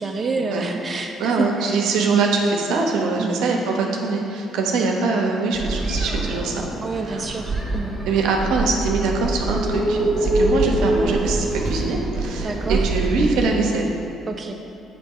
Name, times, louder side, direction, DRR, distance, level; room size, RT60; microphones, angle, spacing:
voice 1, 0.0-1.9 3.2-3.5 6.8-7.9 12.4-12.9 14.3-14.5, right 4 dB, 35° right, 2 dB, 0.5 m, -28 dB
voice 2, 1.2-6.7 7.1-7.2 8.1-13.9, right 4 dB, 80° right, 1 dB, 0.9 m, -23 dB
sound 1, 5.5-13.5, right 2 dB, 10° right, 1.4 m, -24 dB
8.8 x 3.1 x 5.4 m, 2.7 s
cardioid pair, 80°, 0 cm